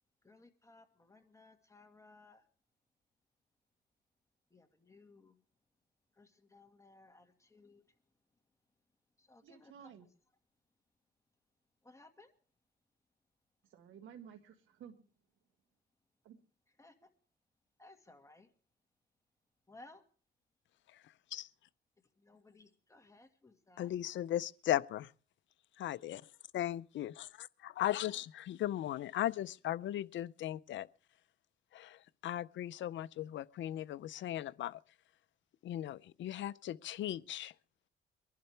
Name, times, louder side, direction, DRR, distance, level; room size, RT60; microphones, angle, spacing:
voice 1, 0.2-2.4 4.5-5.4 6.1-7.8 9.2-9.9 11.8-12.3 16.8-17.1 17.8-18.5 19.7-20.0 22.1-23.9, left 2 dB, 15° left, 1.8 m, -60 dB
voice 2, 9.4-10.1 13.6-15.0 16.2-16.4, right 8 dB, 85° right, 1.8 m, -54 dB
voice 3, 23.8-25.1 25.8-26.2 26.5-30.9 31.7-34.8 35.6-37.5, left 12 dB, 70° left, 0.6 m, -37 dB
23.5 x 11.5 x 3.4 m
cardioid pair, 90°, 20 cm